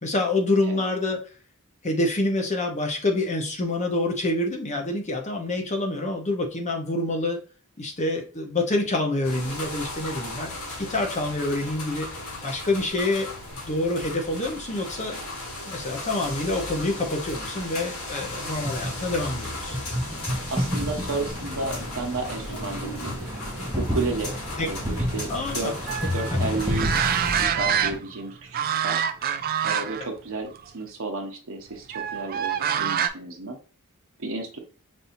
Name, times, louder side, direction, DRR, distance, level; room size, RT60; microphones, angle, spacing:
voice 1, 0.0-1.2 1.8-7.4 7.8-10.5 10.8-12.1 12.4-13.3 13.6-15.2 15.6-19.8 24.6-24.7 25.3-25.7 26.3-26.4, left 2 dB, 35° left, 2 dB, 0.9 m, -27 dB
sound 1, 9.2-27.5, left 2 dB, 75° left, 2.0 m, -36 dB
sound 2, 18.1-28.0, equal, 10° right, 0.7 m, -31 dB
voice 2, 20.5-23.2 23.8-25.7 26.1-26.9 27.3-28.6 28.8-29.0 29.6-33.6 34.2-34.6, right 3 dB, 65° right, 3 dB, 0.9 m, -32 dB
sound 3, 25.9-28.2 28.5-30.1 30.5-30.6 31.9-33.1, right 8 dB, 45° right, 0.4 m, -26 dB
5.3 x 2.7 x 2.6 m, 0.36 s
head